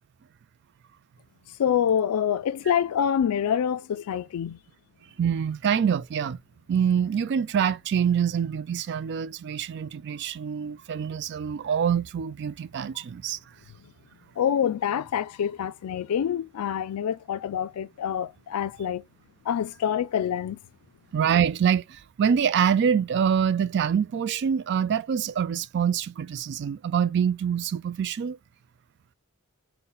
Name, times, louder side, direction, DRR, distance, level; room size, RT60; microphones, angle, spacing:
voice 1, 1.6-4.6 14.4-19.0 19.5-20.6, left 8 dB, 85° left, 0.3 m, -26 dB
voice 2, 5.2-6.4 6.7-13.4 21.1-28.4, right 7 dB, 50° right, 0.3 m, -25 dB
3.9 x 2.2 x 3.9 m
head